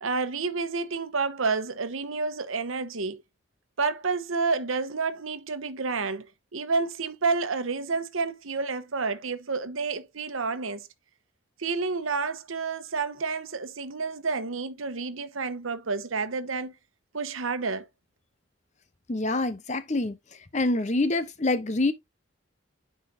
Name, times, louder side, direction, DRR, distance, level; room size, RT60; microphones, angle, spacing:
voice 1, 0.0-3.2 3.8-6.3 6.5-10.9 11.6-16.7 17.1-17.9, right 4 dB, 80° right, 1.0 m, -29 dB
voice 2, 19.1-20.2 20.5-21.9, left 2 dB, 35° left, 0.7 m, -26 dB
10.0 x 5.0 x 2.6 m
head